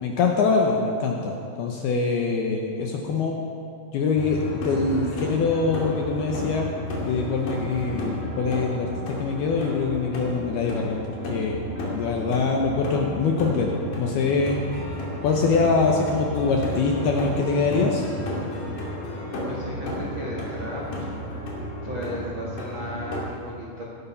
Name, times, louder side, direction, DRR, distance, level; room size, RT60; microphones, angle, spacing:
voice 1, 0.0-3.4 3.9-6.7 7.0-11.6 11.9-14.6 15.2-18.1, left 4 dB, 75° left, 1 dB, 2.4 m, -24 dB
sound 1, 4.2-23.3, left 1 dB, 45° left, 3.6 m, -32 dB
voice 2, 19.4-21.1 21.4-21.6 21.8-23.8, equal, 80° right, -4 dB, 1.1 m, -35 dB
16.5 x 13.0 x 5.6 m, 2.3 s
omnidirectional pair, 5.7 m